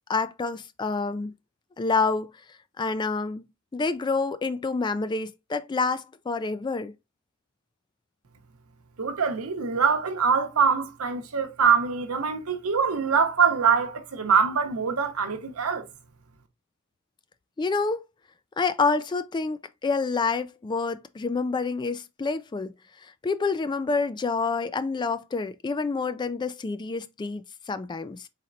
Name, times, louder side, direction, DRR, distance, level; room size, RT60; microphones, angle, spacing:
voice 1, 0.1-1.3 1.8-2.3 2.8-3.5 3.7-6.9 17.6-18.0 18.6-22.7 23.2-27.4 27.7-28.3, left 4 dB, 20° left, 0.3 m, -27 dB
voice 2, 9.0-15.9, right 6 dB, 90° right, 0.9 m, -24 dB
4.2 x 4.1 x 2.5 m
head